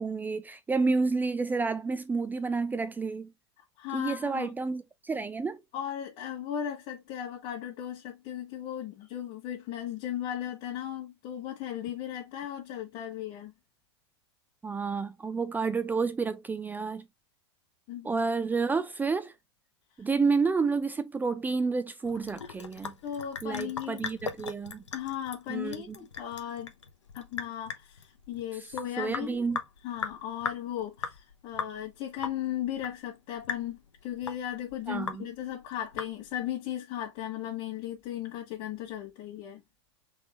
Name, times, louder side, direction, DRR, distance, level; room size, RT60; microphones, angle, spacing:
voice 1, 0.0-3.3 3.9-5.6 14.6-17.0 18.0-19.3 20.0-22.9 23.4-24.8 25.5-25.8 29.0-29.6 34.9-35.3, right 4 dB, 10° right, 0.4 m, -30 dB
voice 2, 3.8-4.5 5.7-13.5 17.9-18.1 23.0-24.1 24.9-26.7 27.1-29.4 29.8-39.6, left 10 dB, 50° left, 1.6 m, -36 dB
Sink (filling or washing) / Drip, 22.0-36.5, left 5 dB, 90° left, 0.9 m, -40 dB
4.0 x 3.5 x 3.0 m
hypercardioid pair, 105°, 15 cm